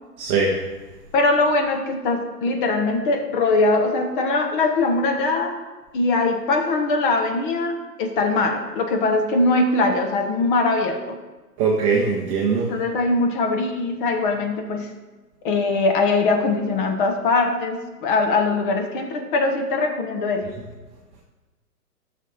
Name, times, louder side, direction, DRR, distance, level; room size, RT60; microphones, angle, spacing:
voice 1, 0.2-0.6 11.6-12.7, right 4 dB, 20° right, -3 dB, 0.7 m, -21 dB
voice 2, 1.1-5.6 5.9-11.2 12.7-14.9 15.4-20.5, left 3 dB, 30° left, 4 dB, 1.3 m, -21 dB
12.5 x 6.4 x 4.2 m, 1.2 s
figure-of-eight pair, 130°, 47 cm